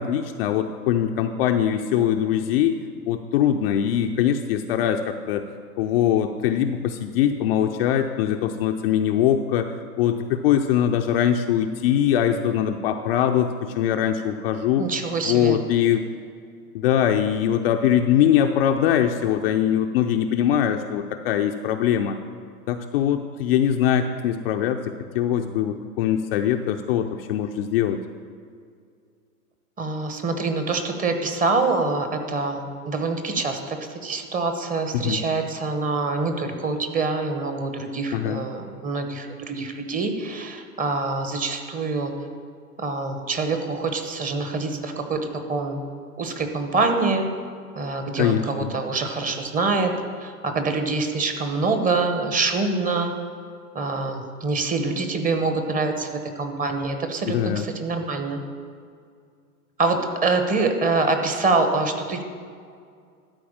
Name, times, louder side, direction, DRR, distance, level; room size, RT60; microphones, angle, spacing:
voice 1, 0.0-2.8 3.1-5.4 5.8-14.9 15.2-16.0 16.7-22.2 22.7-28.0 34.9-35.2 38.1-38.4 48.2-48.7 57.3-57.6, left 10 dB, 40° left, 5 dB, 0.5 m, -22 dB
voice 2, 14.8-15.6 29.8-42.1 42.8-45.8 46.2-47.3 47.8-49.9 50.2-53.1 53.7-58.4 59.8-62.2, right 3 dB, 15° right, 6 dB, 0.9 m, -25 dB
12.5 x 4.7 x 7.2 m, 2.2 s
hypercardioid pair, 105°, 47 cm